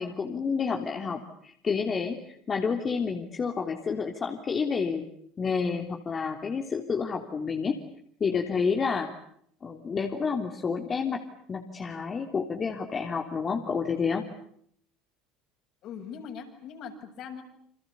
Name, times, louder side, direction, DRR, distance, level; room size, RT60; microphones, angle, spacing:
voice 1, 0.0-5.0 5.4-7.8 8.2-9.1 9.6-11.2 11.5-14.2, left 5 dB, 30° left, 3 dB, 3.4 m, -29 dB
voice 2, 15.8-17.4, left 7 dB, 55° left, 4 dB, 7.7 m, -41 dB
30.0 x 27.5 x 7.1 m, 0.68 s
hypercardioid pair, 70°, 0 cm